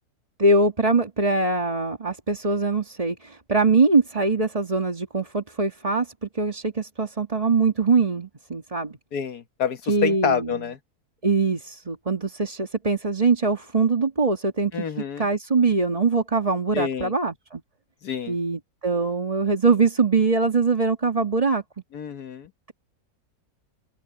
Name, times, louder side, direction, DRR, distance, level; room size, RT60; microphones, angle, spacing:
voice 1, 0.4-9.0 9.9-10.6 11.2-17.6 18.3-21.6, right 3 dB, 25° right, 1.9 m, -22 dB
voice 2, 9.1-10.8 14.7-15.3 16.7-17.1 18.0-18.3 21.9-22.5, left 7 dB, 75° left, 1.9 m, -28 dB
open air
omnidirectional pair, 1.7 m